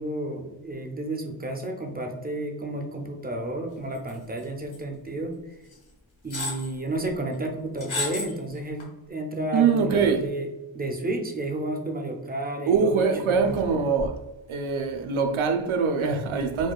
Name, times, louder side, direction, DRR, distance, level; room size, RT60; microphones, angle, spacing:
voice 1, 0.0-5.4 6.2-13.6, right 1 dB, 20° right, 0.4 m, -31 dB
sound 1, 4.1-4.4 4.7-4.8 5.7-5.8 6.3-6.7 7.8-8.3 8.8-8.9, left 3 dB, 80° left, 1.1 m, -31 dB
voice 2, 9.5-10.2 12.7-14.2 14.5-16.7, right 5 dB, 90° right, 0.6 m, -23 dB
4.4 x 2.3 x 2.2 m
wide cardioid pair, 110°, 47 cm